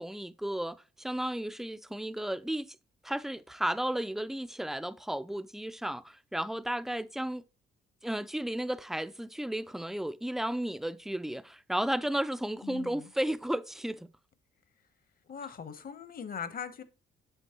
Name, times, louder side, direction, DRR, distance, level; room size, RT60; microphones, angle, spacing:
voice 1, 0.0-2.7 3.0-7.4 8.0-14.1, right 1 dB, ahead, 0.3 m, -33 dB
voice 2, 12.6-13.1 15.3-16.8, left 7 dB, 45° left, 0.9 m, -40 dB
8.3 x 5.3 x 2.9 m
cardioid pair, 90°, 20 cm